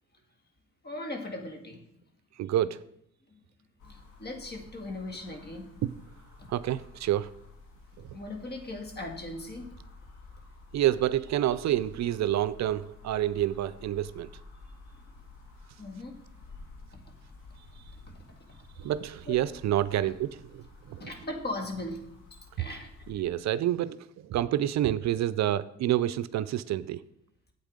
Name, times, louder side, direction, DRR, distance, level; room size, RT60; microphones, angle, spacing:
voice 1, 0.8-1.8 3.8-5.7 6.4-6.5 8.1-9.7 15.8-16.2 16.9-17.0 18.1-18.4 19.3-19.4 20.0-20.1 21.0-22.1 22.6-23.2, left 2 dB, 35° left, 4 dB, 2.0 m, -39 dB
voice 2, 2.4-2.8 5.8-5.9 6.5-7.3 8.0-8.1 10.7-14.3 18.8-21.1 22.6-22.7 23.1-24.0 24.2-27.0, right 12 dB, 65° right, 15 dB, 0.5 m, -28 dB
sound 1, 3.8-23.1, left 3 dB, 85° left, 2.3 m, -52 dB
8.7 x 8.1 x 5.1 m, 0.73 s
cardioid pair, 90°, 30 cm